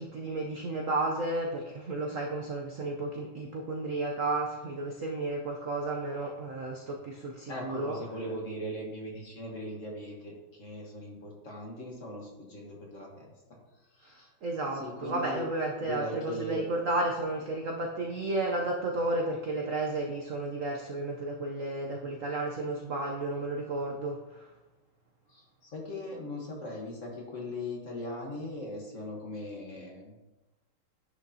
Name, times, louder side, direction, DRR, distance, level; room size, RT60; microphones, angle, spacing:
voice 1, 0.0-8.0 14.1-14.2 14.4-24.5, right 2 dB, 60° right, 0 dB, 0.8 m, -32 dB
voice 2, 7.5-13.3 14.0-14.3 14.7-15.4 15.8-16.6 25.3-30.2, left 1 dB, 40° left, -1 dB, 1.5 m, -39 dB
10.0 x 6.1 x 2.8 m, 1.1 s
omnidirectional pair, 2.3 m